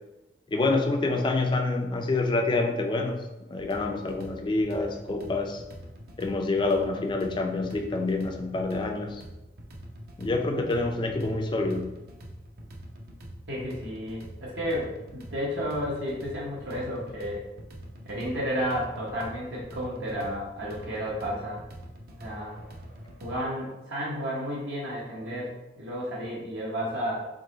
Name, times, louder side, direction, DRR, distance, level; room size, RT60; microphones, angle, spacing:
voice 1, 0.5-3.2 3.5-5.6 6.2-9.2 10.2-11.9, left 2 dB, 25° left, 4 dB, 0.3 m, -27 dB
sound 1, 3.5-23.4, equal, 50° right, 0.6 m, -45 dB
voice 2, 10.4-10.7 13.5-17.4 18.0-21.6 22.2-22.6 23.2-25.5 25.8-27.1, equal, 70° right, -5 dB, 1.0 m, -32 dB
3.9 x 3.0 x 3.8 m, 1.0 s
head